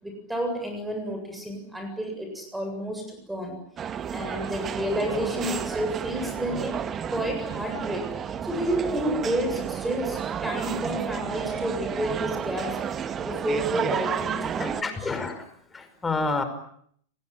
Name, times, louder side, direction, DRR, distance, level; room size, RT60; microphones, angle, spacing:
voice 1, 0.0-3.6 4.1-8.1 8.4-12.8 13.2-15.1, equal, 5° right, 5 dB, 7.6 m, -30 dB
sound 1, 3.8-14.8, right 8 dB, 25° right, 1.7 m, -31 dB
voice 2, 14.6-15.4 15.7-16.4, left 3 dB, 15° left, 9 dB, 5.5 m, -29 dB
30.0 x 21.5 x 9.2 m, 0.67 s
figure-of-eight pair, 90°, 0 cm